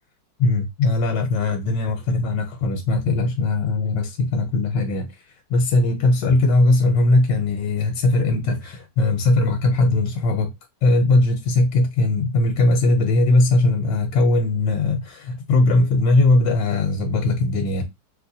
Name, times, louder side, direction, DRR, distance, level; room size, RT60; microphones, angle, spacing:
voice 1, 0.4-10.5 10.8-17.8, left 2 dB, 90° left, 1.3 m, -19 dB
3.1 x 2.9 x 2.6 m
omnidirectional pair, 1.9 m